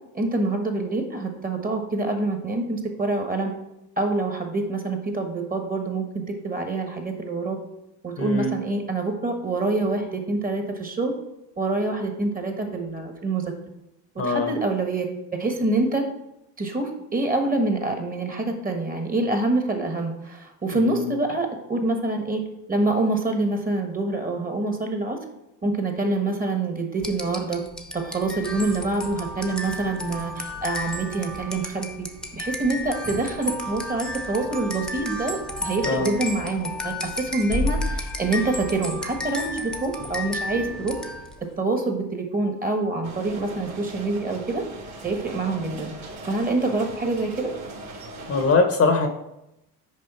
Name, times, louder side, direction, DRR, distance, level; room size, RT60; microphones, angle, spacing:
voice 1, 0.1-3.5 4.0-7.6 8.0-11.1 11.6-13.4 14.2-15.1 15.4-16.0 16.6-22.4 22.7-25.2 25.6-27.6 27.9-32.1 32.3-40.9 41.6-44.6 45.0-45.9 46.2-47.5, right 2 dB, 20° right, 4 dB, 1.3 m, -26 dB
voice 2, 8.2-8.6 14.2-14.5 20.8-21.1 35.8-36.1 48.3-49.1, left 3 dB, 35° left, 6 dB, 0.9 m, -22 dB
sound 1, 27.0-41.5, left 1 dB, ahead, 0.9 m, -32 dB
sound 2, 43.0-48.5, right 2 dB, 40° right, 1.7 m, -40 dB
6.5 x 4.9 x 4.3 m, 0.87 s
supercardioid pair, 100°, 42 cm